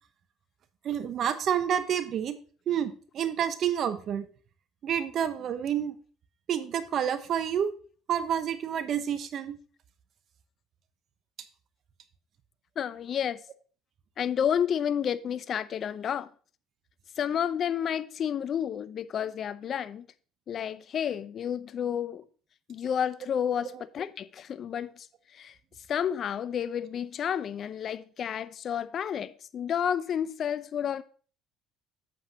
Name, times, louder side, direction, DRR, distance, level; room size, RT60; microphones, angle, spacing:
voice 1, 0.8-2.3 2.7-4.3 4.8-5.9 6.5-7.7 8.1-9.6 23.7-23.8, right 9 dB, 55° right, 0.9 m, -29 dB
voice 2, 12.8-13.4 14.2-16.3 17.2-20.1 20.5-22.3 22.7-25.1 25.3-25.6 25.9-31.0, left 8 dB, 50° left, 0.5 m, -30 dB
8.2 x 7.7 x 2.8 m
supercardioid pair, 75°, 0 cm